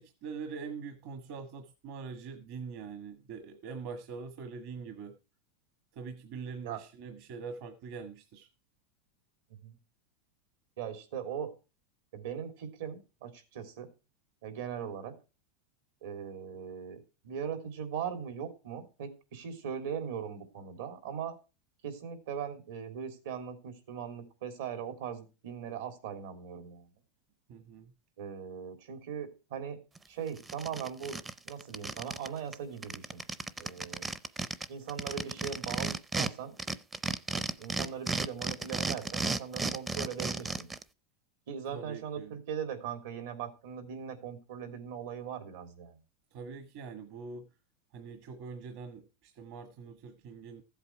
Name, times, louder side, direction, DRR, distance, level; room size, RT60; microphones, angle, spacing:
voice 1, 0.0-5.1 5.9-8.5 27.5-27.9 41.7-42.3 46.3-47.5 47.9-50.6, right 5 dB, 55° right, 1.4 m, -43 dB
voice 2, 10.8-11.5 12.1-13.9 14.4-15.1 16.0-21.4 21.8-26.9 28.2-29.8 30.1-31.2 31.4-33.2 33.6-34.1 34.7-36.6 37.3-40.7 41.5-46.0, right 7 dB, 80° right, 3.3 m, -40 dB
sound 1, 30.0-30.1 30.4-32.3 32.5-32.6 32.8-36.3 36.6-40.8, right 3 dB, 15° right, 0.5 m, -34 dB
14.5 x 8.1 x 4.8 m
supercardioid pair, 155°, 0 cm